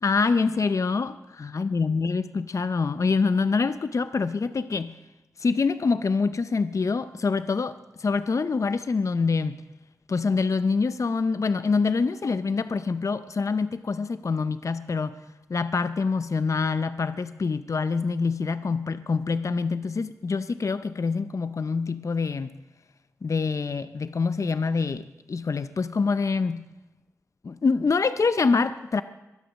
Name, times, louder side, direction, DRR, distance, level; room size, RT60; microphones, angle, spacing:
voice 1, 0.0-5.0 5.4-9.6 10.1-15.2 15.5-22.5 23.2-26.7 27.4-29.0, left 4 dB, 60° left, 12 dB, 0.5 m, -25 dB
22.5 x 7.8 x 6.3 m, 1.0 s
cardioid pair, 40°, 6 cm